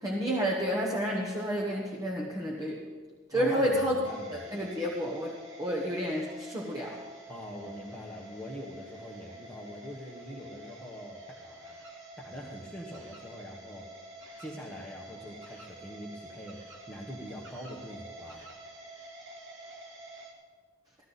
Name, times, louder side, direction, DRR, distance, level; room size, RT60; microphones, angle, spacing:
voice 1, 0.0-2.8 3.3-4.0 4.3-5.3 5.6-7.0, equal, 20° right, -2 dB, 1.2 m, -30 dB
voice 2, 3.3-4.5 7.3-11.8 12.2-13.9 14.4-16.6 16.9-18.5, equal, 5° left, -4 dB, 1.2 m, -43 dB
sound 1, 4.0-20.3, right 1 dB, 65° right, 1.9 m, -48 dB
15.0 x 12.0 x 4.1 m, 1.5 s
head